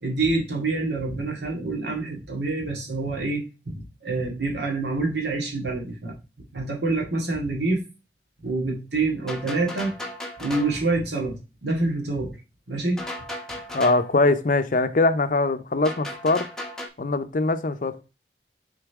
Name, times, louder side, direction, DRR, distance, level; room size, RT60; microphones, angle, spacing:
voice 1, 0.0-6.1 6.5-7.8 8.4-10.0 10.4-12.3 12.7-13.0, right 3 dB, 75° right, 2.0 m, -26 dB
sound 1, 9.3-10.8 13.0-14.1 15.8-16.9, left 1 dB, 5° left, 1.0 m, -35 dB
voice 2, 13.7-16.5 17.0-18.0, left 2 dB, 45° left, 0.6 m, -22 dB
6.8 x 3.9 x 3.6 m
head